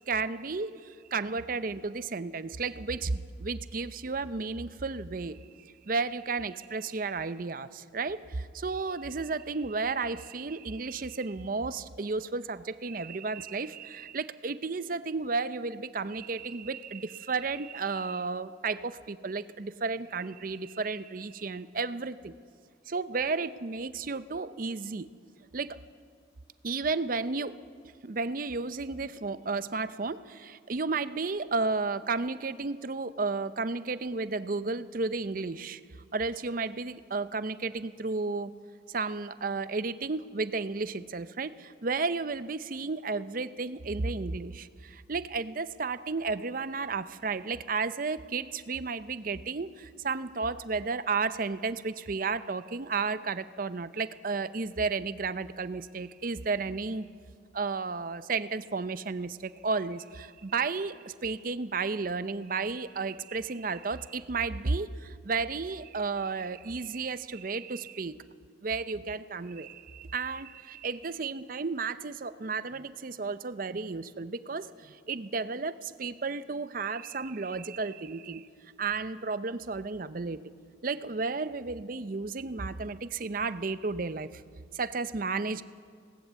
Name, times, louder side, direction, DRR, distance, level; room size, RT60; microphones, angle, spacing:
voice 1, 0.1-22.3 22.9-25.1 25.5-25.8 26.6-27.6 28.0-35.8 36.1-38.5 38.9-57.1 57.5-68.2 68.6-78.5 78.8-80.4 80.8-84.4 84.7-85.6, right 4 dB, 45° right, 14 dB, 0.6 m, -33 dB
20.0 x 17.5 x 8.2 m, 2.1 s
head